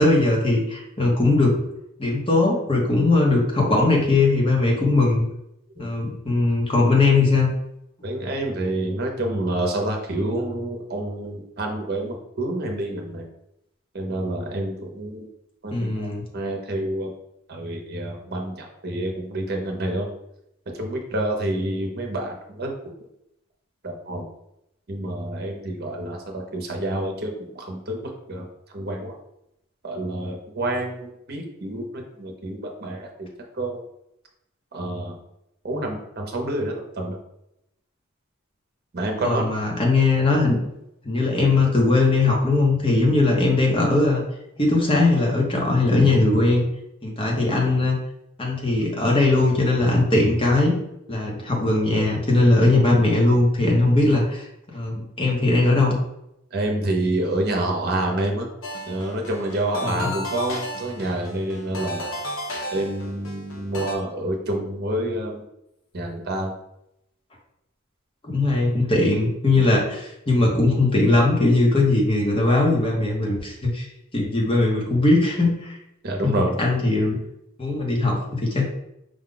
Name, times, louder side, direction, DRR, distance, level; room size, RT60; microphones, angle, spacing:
voice 1, 0.0-1.6 2.0-5.2 5.8-7.5 15.7-16.2 39.2-40.6 41.0-44.2 44.6-46.6 47.0-48.0 48.4-50.7 51.1-56.0 59.8-60.1 68.2-73.9 74.1-75.8 76.2-76.3 76.6-77.2 77.6-78.6, left 2 dB, 25° left, -1 dB, 0.9 m, -20 dB
voice 2, 8.0-13.3 13.9-15.3 15.6-16.1 16.3-17.1 17.5-20.1 20.7-22.7 23.8-24.3 24.9-28.5 28.7-29.2 29.8-33.8 34.7-35.2 35.6-37.2 38.9-39.5 56.5-58.5 58.9-62.0 62.7-65.4 65.9-66.6 76.0-76.6, right 1 dB, 50° right, 2 dB, 0.8 m, -28 dB
sound 1, 58.6-63.9, left 1 dB, 85° left, 0.9 m, -33 dB
5.1 x 2.3 x 3.8 m, 0.82 s
head